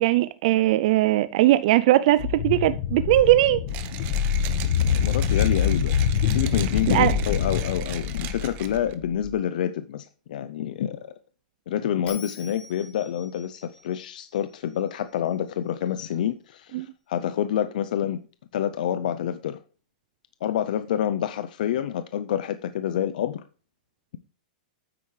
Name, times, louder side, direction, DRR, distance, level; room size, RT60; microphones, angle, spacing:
voice 1, 0.0-3.6 6.9-7.2 16.7-16.9, right 15 dB, 55° right, 0.4 m, -20 dB
sound 1, 2.2-9.3, left 8 dB, 55° left, 1.2 m, -25 dB
Mechanisms, 3.7-8.9, right 12 dB, 40° right, 1.0 m, -39 dB
voice 2, 4.9-5.9 6.3-11.1 11.7-18.2 18.5-19.6 20.4-23.4, left 10 dB, 70° left, 0.6 m, -27 dB
Bell, 12.1-15.3, left 7 dB, 30° left, 3.1 m, -46 dB
9.3 x 8.7 x 3.3 m
supercardioid pair, 145°, 5 cm